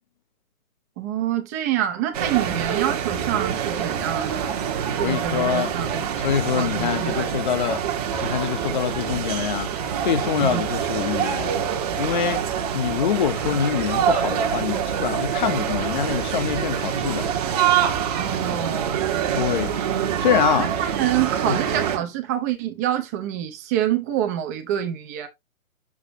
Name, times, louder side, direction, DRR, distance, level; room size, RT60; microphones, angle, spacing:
voice 1, 1.0-4.5 5.0-6.1 6.5-7.3 10.4-10.6 18.2-19.0 20.6-25.3, right 11 dB, 10° right, 0.6 m, -26 dB
sound 1, 2.1-22.0, right 8 dB, 30° right, 1.1 m, -25 dB
voice 2, 5.0-5.7 6.2-7.8 8.2-9.7 10.0-11.6 12.0-12.4 12.7-17.3 19.3-19.8 20.2-20.7 21.4-21.6, left 8 dB, 35° left, 0.7 m, -25 dB
7.0 x 5.9 x 2.7 m
figure-of-eight pair, 130°, 42 cm